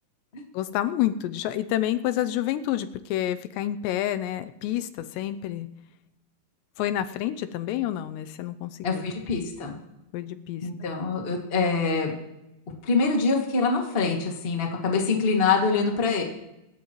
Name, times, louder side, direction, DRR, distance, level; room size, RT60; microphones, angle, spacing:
voice 1, 0.5-5.7 6.8-9.1 10.1-10.9, left 12 dB, 85° left, 11 dB, 2.8 m, -29 dB
voice 2, 8.8-9.7 10.6-12.1 12.8-16.2, left 4 dB, 25° left, 0 dB, 1.1 m, -25 dB
26.0 x 12.5 x 3.1 m, 0.92 s
omnidirectional pair, 5.1 m